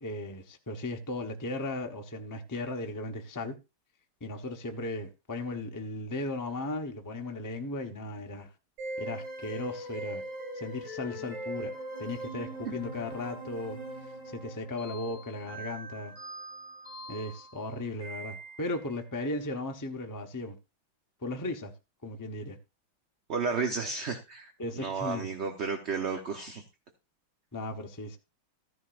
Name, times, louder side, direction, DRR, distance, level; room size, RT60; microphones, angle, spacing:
voice 1, 0.0-3.5 4.2-8.5 9.0-10.2 10.5-11.7 12.0-13.8 14.2-16.1 17.1-20.6 21.2-21.7 22.0-22.6 24.6-25.3 27.5-28.2, left 2 dB, 25° left, 0.3 m, -36 dB
sound 1, 8.8-18.9, right 1 dB, 70° right, 5.1 m, -41 dB
voice 2, 23.3-26.6, right 5 dB, 45° right, 1.0 m, -33 dB
14.5 x 11.0 x 2.5 m
omnidirectional pair, 2.2 m